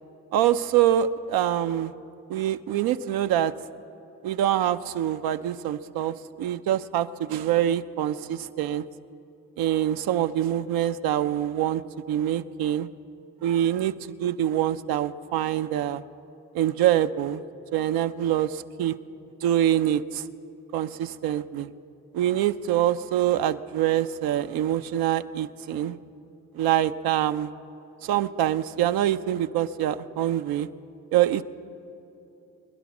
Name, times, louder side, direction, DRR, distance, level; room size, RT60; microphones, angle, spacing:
voice 1, 0.3-1.9 2.3-3.5 4.2-8.8 9.6-11.8 12.1-12.9 13.4-13.9 14.2-16.0 16.5-17.4 17.7-19.0 19.4-20.2 20.7-21.7 22.1-26.0 26.5-27.5 28.0-30.7 31.1-31.4, right 11 dB, 85° right, 10 dB, 0.5 m, -25 dB
22.5 x 10.5 x 6.0 m, 2.9 s
supercardioid pair, 50°, 36 cm